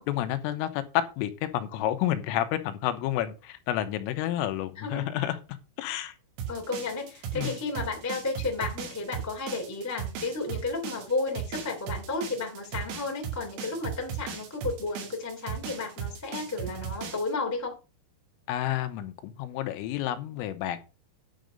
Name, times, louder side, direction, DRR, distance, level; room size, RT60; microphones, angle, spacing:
voice 1, 0.1-5.4 5.8-6.1 7.3-7.6 18.5-20.8, left 12 dB, 80° left, 3.5 m, -30 dB
voice 2, 4.7-5.1 6.5-17.7, left 3 dB, 10° left, 0.9 m, -33 dB
sound 1, 6.4-17.3, right 8 dB, 80° right, 5.1 m, -37 dB
10.5 x 5.3 x 6.3 m
omnidirectional pair, 5.9 m